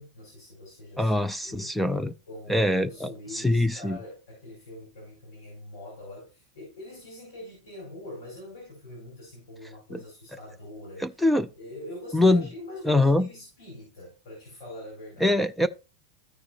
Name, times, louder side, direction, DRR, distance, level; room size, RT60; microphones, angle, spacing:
voice 1, 0.0-1.1 1.4-1.7 2.3-11.2 11.6-15.4, left 1 dB, 80° left, 4.7 m, -43 dB
voice 2, 1.0-2.1 2.5-4.0 9.9-10.0 11.0-11.5 12.1-12.4 12.9-13.3 15.2-15.7, left 1 dB, 5° left, 0.5 m, -23 dB
14.0 x 4.7 x 2.9 m
hypercardioid pair, 110°, 2 cm